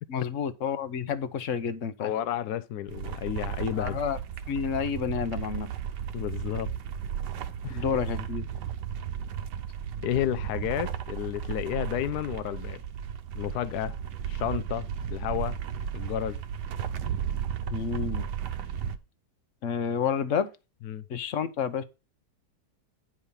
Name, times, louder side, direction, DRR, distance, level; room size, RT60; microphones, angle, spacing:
voice 1, 0.1-2.1 3.8-4.2 4.5-5.7 7.7-8.4 17.7-18.3 19.6-20.5 21.1-21.8, left 7 dB, 50° left, 1.1 m, -30 dB
voice 2, 2.0-4.0 6.1-6.7 7.6-7.8 10.0-12.8 13.3-14.0 14.3-15.6 15.9-16.4 20.8-21.0, left 11 dB, 70° left, 1.1 m, -31 dB
sound 1, 2.9-19.0, right 9 dB, 75° right, 1.4 m, -34 dB
10.0 x 5.0 x 5.5 m
omnidirectional pair, 1.9 m